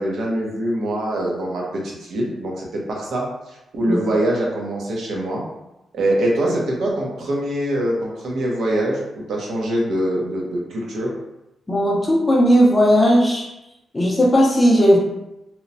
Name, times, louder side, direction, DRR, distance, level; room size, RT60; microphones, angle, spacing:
voice 1, 0.0-5.4 5.9-11.1, right 1 dB, 65° right, -2 dB, 0.6 m, -24 dB
voice 2, 11.7-13.5 13.9-15.0, equal, 15° left, -3 dB, 0.5 m, -16 dB
2.9 x 2.0 x 2.6 m, 0.90 s
wide cardioid pair, 165°, 0 cm